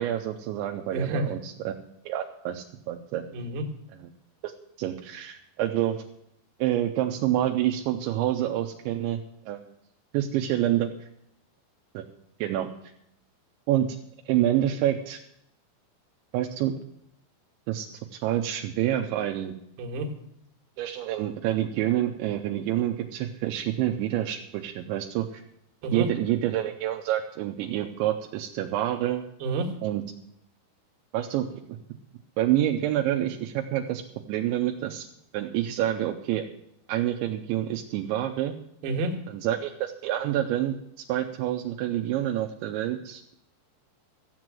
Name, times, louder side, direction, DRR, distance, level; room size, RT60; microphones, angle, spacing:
voice 1, 0.0-1.7 2.1-3.2 4.4-4.5 4.8-6.0 6.6-9.6 10.1-10.9 11.9-12.0 12.4-12.7 13.7-13.9 14.3-15.2 16.3-16.8 17.7-19.5 20.8-25.4 25.9-29.2 29.8-30.0 31.1-31.5 32.4-34.0 34.3-35.1 35.3-36.5 36.9-38.5 39.3-40.8 41.1-43.2, right 12 dB, 85° right, 2 dB, 3.1 m, -27 dB
voice 2, 0.9-1.3 3.3-3.6 19.8-20.1 25.8-26.1 29.4-29.7 38.8-39.2, right 2 dB, 65° right, 3 dB, 3.5 m, -29 dB
14.5 x 7.9 x 7.6 m, 0.75 s
omnidirectional pair, 5.3 m